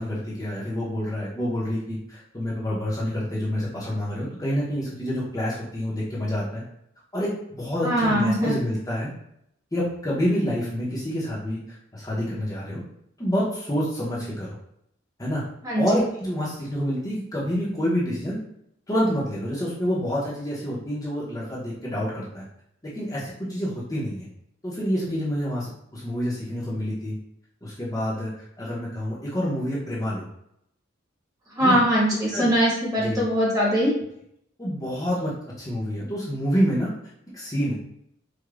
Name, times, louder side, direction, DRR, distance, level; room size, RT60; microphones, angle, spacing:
voice 1, 0.0-6.6 7.1-9.1 9.7-12.8 13.2-14.6 15.2-15.4 15.8-18.4 18.9-22.4 22.9-24.3 24.6-27.2 27.6-28.3 28.6-30.2 31.6-31.8 32.3-32.5 33.0-33.3 34.6-35.3 35.6-36.9 37.3-37.7, equal, 20° left, -7 dB, 0.7 m, -27 dB
voice 2, 7.8-8.5 15.6-15.8 31.6-33.9, equal, 20° right, -5 dB, 1.1 m, -21 dB
4.8 x 2.2 x 2.3 m, 0.75 s
head